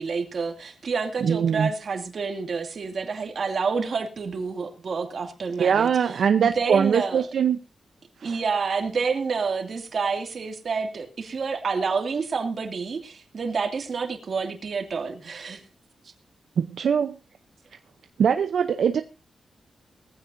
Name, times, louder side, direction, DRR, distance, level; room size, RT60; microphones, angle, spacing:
voice 1, 0.0-7.3 8.2-15.6, right 5 dB, 55° right, 2.5 m, -28 dB
voice 2, 1.2-1.7 5.6-7.6 8.2-8.4 16.6-17.2 18.2-19.0, right 7 dB, 80° right, 0.8 m, -22 dB
19.5 x 15.0 x 2.7 m
wide cardioid pair, 115°, 0 cm